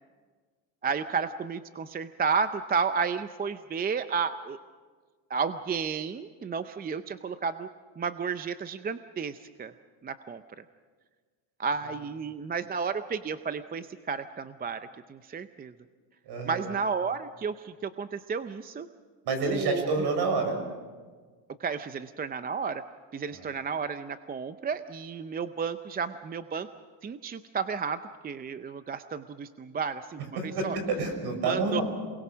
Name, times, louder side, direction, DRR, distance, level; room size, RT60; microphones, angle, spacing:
voice 1, 0.8-4.6 5.3-7.7 8.0-9.7 10.0-10.4 11.6-15.7 16.4-18.9 19.5-20.1 21.6-22.8 23.1-26.7 27.0-30.2 30.6-30.8 31.4-31.8, right 5 dB, 20° right, 11 dB, 0.6 m, -32 dB
voice 2, 16.2-16.7 19.2-20.6 23.3-23.5 30.4-31.8, right 3 dB, 55° right, 6 dB, 6.3 m, -28 dB
28.0 x 20.5 x 6.2 m, 1.5 s
cardioid pair, 125°, 48 cm